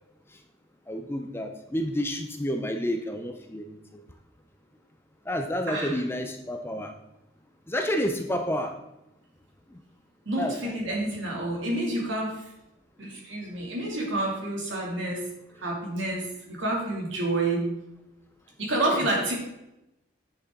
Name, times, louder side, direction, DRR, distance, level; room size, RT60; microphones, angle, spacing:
voice 1, 0.9-4.0 5.3-6.9 7.7-8.8 10.4-11.0 18.9-19.1, equal, 10° left, 5 dB, 0.5 m, -30 dB
voice 2, 10.3-12.4 13.0-15.2 15.6-17.6 18.6-19.3, right 2 dB, 65° right, -2 dB, 2.5 m, -29 dB
8.3 x 6.8 x 3.7 m, 0.90 s
head